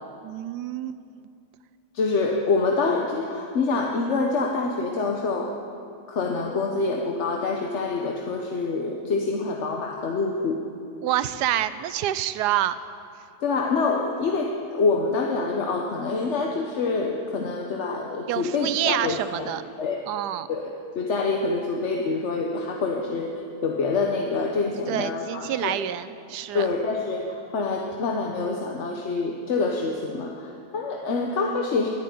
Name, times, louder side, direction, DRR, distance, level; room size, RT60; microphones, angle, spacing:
voice 1, 0.2-1.0 11.0-12.7 18.3-19.6 20.1-20.5 24.9-26.7, right 12 dB, 90° right, 14 dB, 1.2 m, -27 dB
voice 2, 1.9-5.5 6.1-10.6 13.4-19.5 19.8-20.0 20.5-23.3 23.6-25.8 26.5-31.9, left 3 dB, 50° left, 1 dB, 1.1 m, -26 dB
11.5 x 10.5 x 9.3 m, 2.4 s
omnidirectional pair, 1.7 m